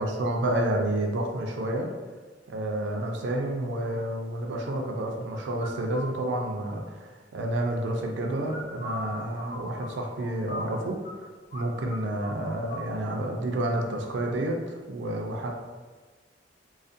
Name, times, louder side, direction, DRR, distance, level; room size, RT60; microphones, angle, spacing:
voice 1, 0.0-1.9 2.5-11.0 11.5-15.5, right 1 dB, 75° right, 1 dB, 0.4 m, -29 dB
sound 1, 5.6-6.2 8.4-11.2 11.5-11.6 11.9-12.9, left 1 dB, 55° left, 0.4 m, -39 dB
2.4 x 2.1 x 2.5 m, 1.4 s
head